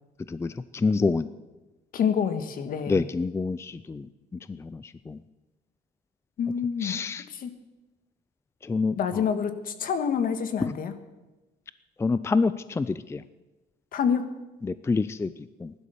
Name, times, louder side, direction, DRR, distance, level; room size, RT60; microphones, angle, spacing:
voice 1, 0.3-1.3 2.9-5.2 6.8-7.2 8.6-9.0 10.6-10.7 12.0-13.2 14.6-15.3 15.6-15.7, left 4 dB, 15° left, 15 dB, 0.4 m, -27 dB
voice 2, 1.9-3.0 6.4-7.0 7.3-7.5 9.0-10.9 13.9-14.3, left 7 dB, 55° left, 10 dB, 1.6 m, -27 dB
15.5 x 11.5 x 7.0 m, 1.1 s
cardioid pair, 110°, 17 cm